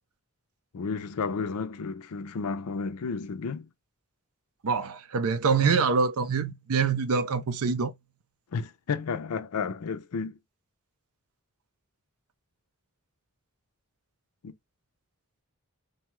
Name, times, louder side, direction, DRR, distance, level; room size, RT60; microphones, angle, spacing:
voice 1, 0.7-3.7 8.5-10.4 14.4-14.5, left 5 dB, 90° left, 0.5 m, -32 dB
voice 2, 4.6-7.9, right 5 dB, 75° right, 0.5 m, -25 dB
2.7 x 2.3 x 3.0 m
head